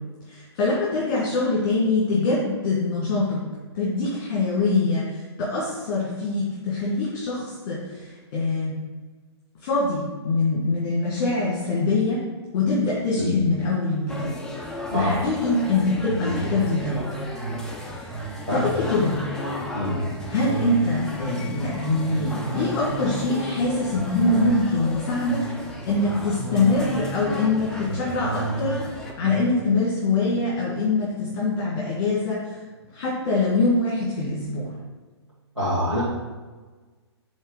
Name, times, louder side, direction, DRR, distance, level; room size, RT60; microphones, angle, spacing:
voice 1, 0.3-3.4 3.7-8.8 9.6-12.2 12.5-14.4 14.9-17.1 17.8-19.2 20.2-25.4 25.8-32.6 32.9-34.7, left 3 dB, 35° left, -6 dB, 1.8 m, -24 dB
sound 1, 14.1-29.1, left 2 dB, 5° left, 0.5 m, -36 dB
voice 2, 14.9-15.3 16.2-16.3 18.5-18.7 19.7-20.0 35.6-36.0, equal, 90° right, -12 dB, 2.0 m, -25 dB
sound 2, 16.0-31.8 32.2-32.3, right 3 dB, 35° right, 1.7 m, -34 dB
5.3 x 3.7 x 5.4 m, 1.3 s
figure-of-eight pair, 115°, 14 cm